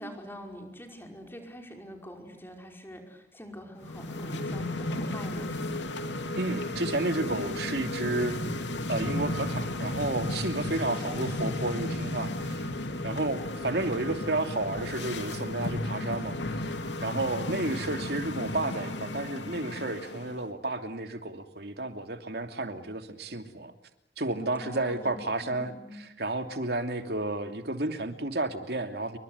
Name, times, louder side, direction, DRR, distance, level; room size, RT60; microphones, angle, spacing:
voice 1, 0.0-5.8 11.0-11.9 12.5-13.2 24.6-26.0, equal, 15° left, 3 dB, 5.2 m, -45 dB
sound 1, 3.8-20.4, left 1 dB, 85° left, 2.8 m, -34 dB
voice 2, 6.4-8.4 8.9-12.6 13.0-16.4 17.0-23.7 24.2-25.7 26.0-29.2, right 2 dB, 60° right, 7 dB, 2.9 m, -31 dB
29.0 x 24.5 x 8.2 m, 0.79 s
head